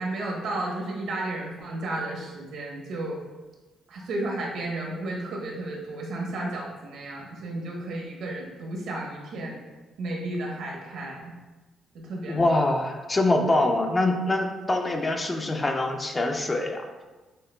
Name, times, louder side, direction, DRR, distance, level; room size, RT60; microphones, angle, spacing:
voice 1, 0.0-3.2 3.9-9.6 10.0-11.3 11.9-12.6, right 2 dB, 80° right, -2 dB, 0.9 m, -33 dB
voice 2, 12.3-16.8, left 2 dB, 25° left, 3 dB, 0.4 m, -24 dB
6.3 x 2.4 x 2.2 m, 1.2 s
cardioid pair, 90°, 0 cm